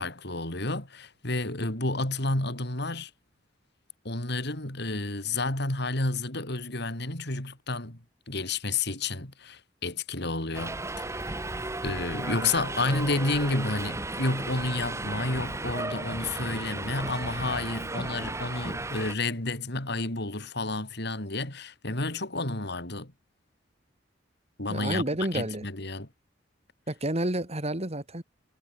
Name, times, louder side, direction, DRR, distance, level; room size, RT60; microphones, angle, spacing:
voice 1, 0.0-3.1 4.0-8.0 8.3-11.4 11.8-23.1 24.6-25.0 25.3-26.1, left 2 dB, 60° left, 4.6 m, -30 dB
Subway metro underground, 10.5-19.2, right 2 dB, 15° right, 1.2 m, -34 dB
voice 2, 24.7-25.7 26.9-28.2, right 1 dB, 35° right, 3.3 m, -30 dB
head